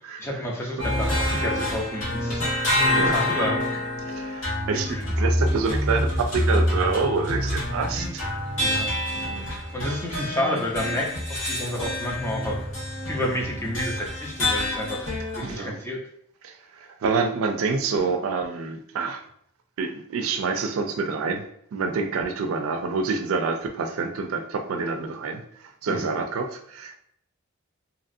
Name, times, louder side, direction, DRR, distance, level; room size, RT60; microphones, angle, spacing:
voice 1, 0.2-2.5 2.8-3.8 4.7-5.0 8.6-12.6 13.1-16.0 25.9-26.1, left 1 dB, 10° left, -2 dB, 0.5 m, -30 dB
sound 1, 0.8-15.5, left 1 dB, 70° left, 1.4 m, -27 dB
voice 2, 4.1-8.2 15.4-15.7 16.4-19.2 19.8-21.4 21.7-27.0, right 4 dB, 75° right, 5 dB, 0.4 m, -27 dB
2.9 x 2.4 x 2.6 m, 0.69 s
head